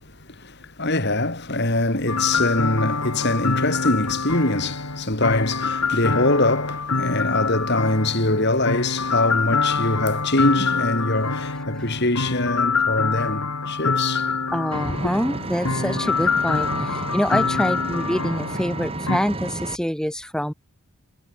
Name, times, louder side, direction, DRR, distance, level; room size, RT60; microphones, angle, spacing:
voice 1, 0.4-14.3, left 2 dB, 50° left, 4.4 m, -23 dB
sound 1, 2.1-19.2, left 4 dB, 85° left, 3.4 m, -25 dB
voice 2, 14.5-20.5, equal, 5° left, 1.6 m, -26 dB
Engine, 14.7-19.8, right 2 dB, 25° right, 1.4 m, -31 dB
head